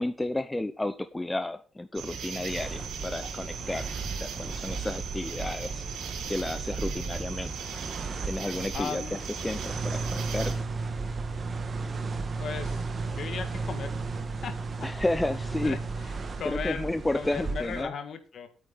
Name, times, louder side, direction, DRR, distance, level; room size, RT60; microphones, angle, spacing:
voice 1, 0.0-5.9 6.3-7.6 8.2-10.7 14.8-15.8 16.4-17.9, left 2 dB, 10° left, 12 dB, 0.6 m, -32 dB
sound 1, 1.9-10.5, right 6 dB, 70° right, 3.5 m, -38 dB
sound 2, 2.5-17.8, right 4 dB, 30° right, 1.6 m, -35 dB
voice 2, 8.7-9.2 12.4-14.1 14.4-14.9 15.6-16.9 17.1-18.5, left 6 dB, 50° left, 9 dB, 1.9 m, -37 dB
12.5 x 8.8 x 4.0 m, 0.35 s
cardioid pair, 135°, 0 cm